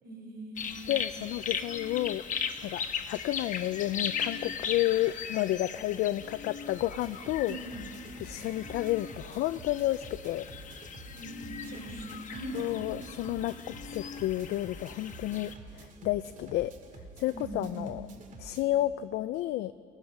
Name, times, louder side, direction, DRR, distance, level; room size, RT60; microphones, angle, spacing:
voice 1, 0.0-0.8 7.5-7.9 11.1-12.8 17.3-17.9, right 1 dB, 65° right, 1 dB, 4.7 m, -41 dB
sound 1, 0.6-15.5, left 7 dB, 50° left, 1.3 m, -38 dB
voice 2, 0.9-2.2 2.6-7.6 8.2-10.5 12.5-16.7 17.2-18.1 18.4-19.7, left 15 dB, 75° left, 12 dB, 0.5 m, -31 dB
sound 2, 6.6-18.7, right 3 dB, 50° right, 2.2 m, -49 dB
27.0 x 17.0 x 6.1 m, 2.6 s
cardioid pair, 110°, 17 cm